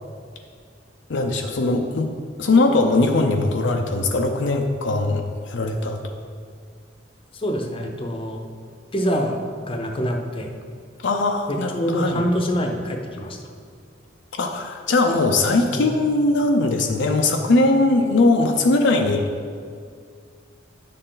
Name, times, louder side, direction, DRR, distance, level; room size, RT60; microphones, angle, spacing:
voice 1, 1.1-2.1 2.4-6.0 11.0-12.2 14.4-19.2, left 2 dB, 65° left, 3 dB, 0.6 m, -20 dB
voice 2, 7.3-8.4 8.9-9.4 9.7-10.5 11.5-13.4 15.7-15.9, equal, 30° left, 2 dB, 0.8 m, -25 dB
9.6 x 6.6 x 3.9 m, 2.2 s
head